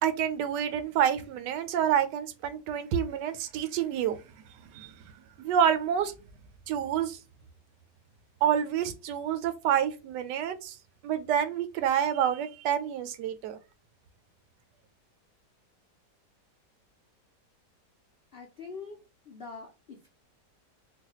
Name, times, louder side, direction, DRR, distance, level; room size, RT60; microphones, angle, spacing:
voice 1, 0.0-4.2 4.6-5.0 5.4-6.1 6.7-7.2 8.4-10.8 11.0-13.6, right 9 dB, 80° right, 1.2 m, -28 dB
voice 2, 18.3-19.0 19.3-20.1, left 4 dB, 65° left, 0.5 m, -43 dB
3.9 x 2.2 x 2.9 m
omnidirectional pair, 1.8 m